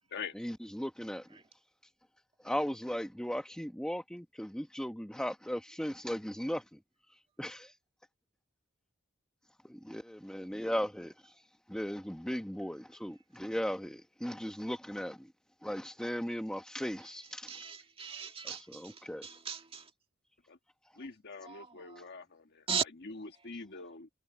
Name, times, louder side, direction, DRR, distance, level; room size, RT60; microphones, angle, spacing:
voice 1, 0.4-1.3 2.4-6.6 7.4-7.7 9.7-11.4 11.7-15.3 15.6-17.5 18.7-19.3, equal, 5° left, 1.2 m, -37 dB
voice 2, 17.0-19.9 21.0-21.1 21.4-22.1 22.7-22.8, right 6 dB, 30° right, 2.1 m, -39 dB
voice 3, 20.9-22.6 23.0-24.1, left 4 dB, 55° left, 1.6 m, -44 dB
head